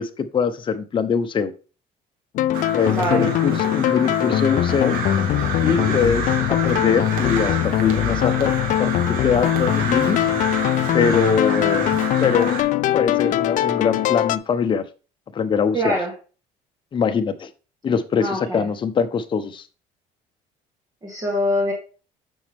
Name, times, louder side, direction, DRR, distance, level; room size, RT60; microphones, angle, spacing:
voice 1, 0.0-1.5 2.7-5.0 5.6-10.3 10.9-11.9 12.2-12.5 12.9-14.8 15.3-16.0 16.9-17.5 17.8-19.6, left 6 dB, 35° left, 7 dB, 0.9 m, -22 dB
sound 1, 2.3-14.4, left 13 dB, 60° left, 0.5 m, -21 dB
Crow, 2.5-12.6, right 4 dB, 75° right, 2.0 m, -29 dB
voice 2, 2.9-3.3 5.6-5.9 15.7-16.1 18.2-18.7 21.0-21.7, equal, 25° right, 0 dB, 2.0 m, -24 dB
7.1 x 6.3 x 3.5 m, 0.35 s
cardioid pair, 120°, 15 cm